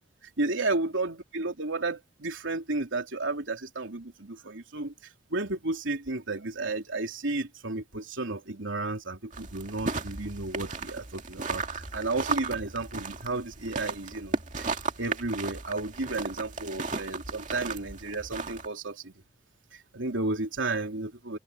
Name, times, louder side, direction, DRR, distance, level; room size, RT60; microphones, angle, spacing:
voice 1, 0.4-4.9 5.3-14.7 15.0-19.1 19.7-21.4, right 2 dB, 85° right, 3.1 m, -32 dB
sound 1, 9.3-18.7, right 4 dB, 40° right, 2.3 m, -35 dB
open air
head